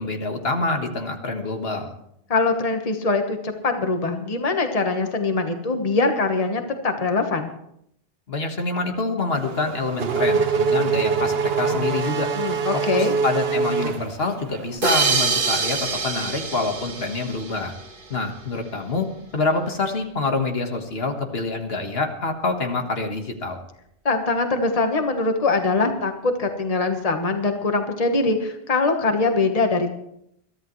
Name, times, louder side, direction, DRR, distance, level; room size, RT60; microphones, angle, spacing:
voice 1, 0.0-1.9 8.3-12.3 12.9-17.7 18.1-19.1 19.3-23.6, left 3 dB, 70° left, 4 dB, 1.8 m, -26 dB
voice 2, 2.3-7.5 12.3-13.2 24.0-29.9, left 3 dB, 35° left, 5 dB, 1.3 m, -22 dB
Race car auto racing / Accelerating revving vroom, 9.4-14.7, right 5 dB, 75° right, 1.2 m, -24 dB
sound 1, 14.8-18.1, right 4 dB, 55° right, 1.7 m, -25 dB
22.5 x 13.5 x 3.1 m, 0.75 s
omnidirectional pair, 1.0 m